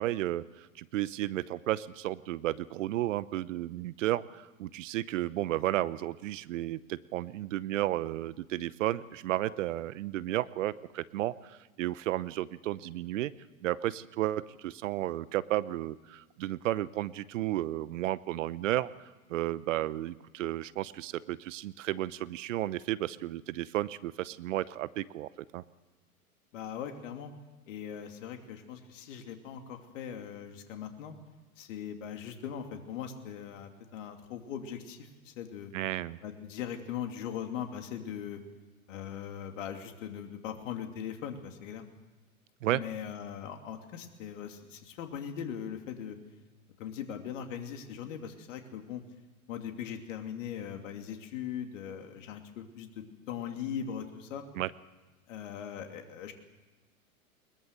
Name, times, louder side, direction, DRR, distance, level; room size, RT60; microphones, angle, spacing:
voice 1, 0.0-13.3 13.6-18.9 19.3-25.6 35.7-36.2 42.6-42.8 54.5-54.7, right 14 dB, 60° right, 18 dB, 0.9 m, -33 dB
voice 2, 26.5-27.3 27.7-31.1 31.6-35.7 36.2-38.4 38.9-41.8 42.7-46.2 46.8-49.0 49.5-54.5 55.3-56.3, left 8 dB, 60° left, 5 dB, 2.8 m, -40 dB
21.5 x 21.0 x 6.8 m, 1.2 s
hypercardioid pair, 110°, 43 cm